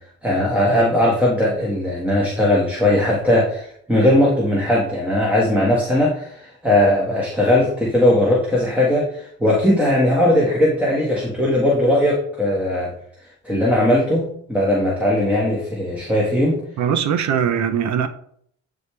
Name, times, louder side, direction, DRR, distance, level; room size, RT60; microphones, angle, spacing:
voice 1, 0.2-12.9 13.4-16.6, left 1 dB, 5° right, -5 dB, 1.7 m, -18 dB
voice 2, 16.8-18.1, right 8 dB, 65° right, 9 dB, 0.8 m, -20 dB
9.4 x 3.5 x 3.3 m, 0.65 s
cardioid pair, 90°, 30 cm